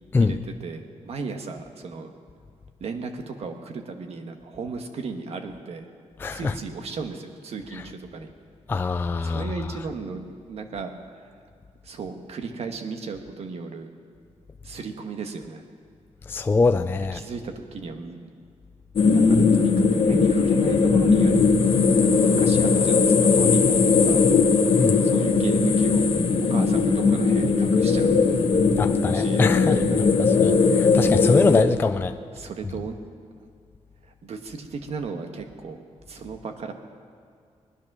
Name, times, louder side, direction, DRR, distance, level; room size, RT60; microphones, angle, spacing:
voice 1, 0.2-2.1 2.8-5.9 6.3-8.3 9.2-11.3 11.8-13.9 14.6-15.6 17.1-18.3 19.1-21.5 22.0-24.2 25.0-26.0 26.4-28.4 29.1-30.1 32.4-33.0 34.2-35.8 36.1-36.7, right 4 dB, 60° right, 6 dB, 1.3 m, -35 dB
voice 2, 6.2-6.5 7.7-7.8 8.7-9.5 16.2-17.2 24.8-25.1 28.8-32.2, left 4 dB, 20° left, 8 dB, 0.3 m, -23 dB
sound 1, 19.0-31.6, left 4 dB, 50° left, 1.1 m, -19 dB
20.0 x 10.5 x 6.1 m, 2.2 s
wide cardioid pair, 170°, 12 cm